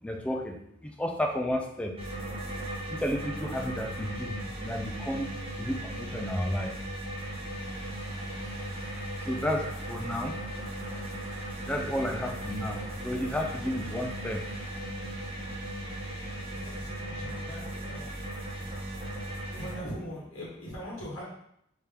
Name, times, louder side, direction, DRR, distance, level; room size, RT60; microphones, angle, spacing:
voice 1, 0.0-1.9 2.9-5.3 5.6-6.8 9.2-10.4 11.6-14.5 18.6-18.8 19.2-19.4, equal, 5° left, 2 dB, 0.3 m, -32 dB
sound 1, 2.0-19.8, right 1 dB, 25° right, 0.7 m, -37 dB
sound 2, 7.5-14.8, left 1 dB, 30° left, 0.7 m, -52 dB
voice 2, 16.3-18.1 19.5-21.2, equal, 70° left, -5 dB, 1.0 m, -41 dB
3.4 x 2.8 x 3.3 m, 0.74 s
head